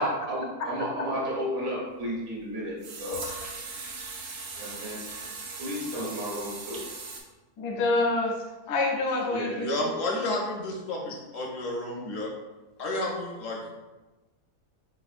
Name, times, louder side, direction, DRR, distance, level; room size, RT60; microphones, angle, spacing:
voice 1, 0.0-2.7 3.0-3.2 4.5-5.0 5.6-6.8 9.3-9.7, equal, 50° right, -5 dB, 1.4 m, -32 dB
sound 1, 2.0-2.1 2.8-7.2, right 4 dB, 70° right, 1.1 m, -39 dB
voice 2, 7.6-9.7, left 2 dB, 85° left, 1 dB, 1.2 m, -27 dB
voice 3, 9.6-12.3 12.8-13.6, left 2 dB, 70° left, -1 dB, 0.8 m, -31 dB
3.7 x 3.4 x 2.4 m, 1.1 s
omnidirectional pair, 1.7 m